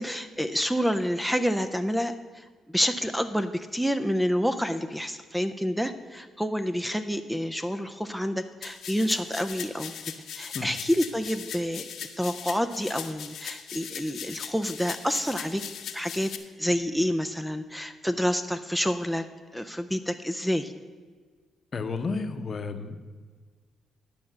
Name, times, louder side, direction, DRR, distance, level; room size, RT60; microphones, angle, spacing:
voice 1, 0.0-9.9 10.3-15.6 15.9-16.3 16.6-19.2 19.5-20.7, equal, ahead, 10 dB, 0.5 m, -28 dB
sound 1, 8.6-16.4, left 8 dB, 70° left, 0.9 m, -39 dB
voice 2, 21.7-23.0, left 4 dB, 45° left, 9 dB, 0.8 m, -31 dB
11.0 x 5.3 x 7.9 m, 1.5 s
cardioid pair, 90°, 0 cm